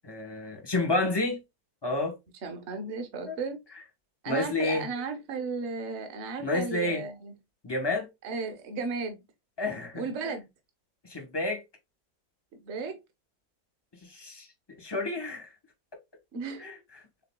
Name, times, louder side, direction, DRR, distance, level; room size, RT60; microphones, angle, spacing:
voice 1, 0.0-1.4 1.8-2.1 3.3-3.4 4.3-4.9 6.4-7.0 7.6-8.1 9.6-10.3 11.0-11.6 14.0-14.5 14.8-15.5 16.6-16.8, left 2 dB, 25° left, 0.6 m, -30 dB
voice 2, 2.4-3.6 4.2-7.3 8.2-9.2 9.9-10.5 12.5-13.0 16.3-16.7, right 4 dB, 45° right, 1.0 m, -34 dB
6.7 x 3.5 x 2.2 m
omnidirectional pair, 2.1 m